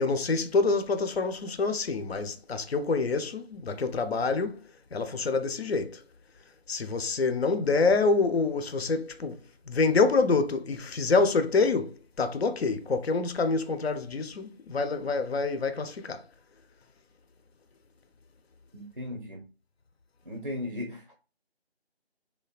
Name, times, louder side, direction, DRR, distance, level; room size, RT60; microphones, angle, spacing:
voice 1, 0.0-4.6 4.9-6.0 6.7-9.4 9.7-16.2, left 4 dB, 70° left, 0.5 m, -26 dB
voice 2, 18.7-19.4 20.3-21.1, left 1 dB, 40° right, 0.4 m, -36 dB
3.2 x 2.2 x 2.3 m
figure-of-eight pair, 165°, 33 cm